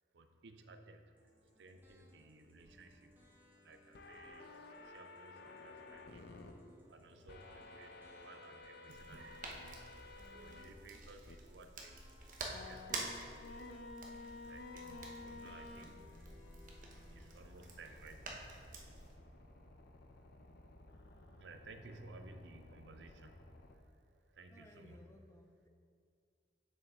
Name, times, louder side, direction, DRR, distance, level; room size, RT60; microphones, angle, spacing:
voice 1, 0.1-1.3 1.6-3.1 3.6-6.3 6.9-16.1 17.1-25.0, right 2 dB, 80° right, 7 dB, 0.6 m, -58 dB
sound 1, 1.1-17.3, equal, 10° right, 1.4 m, -65 dB
sound 2, 3.9-6.5 7.3-10.7 11.3-11.4 12.5-23.7, left 3 dB, 65° left, 0.6 m, -54 dB
sound 3, 8.9-19.1, right 3 dB, 50° right, 0.9 m, -49 dB
voice 2, 24.5-25.7, left 1 dB, 15° left, 4 dB, 0.5 m, -60 dB
6.7 x 6.7 x 3.6 m, 2.3 s
head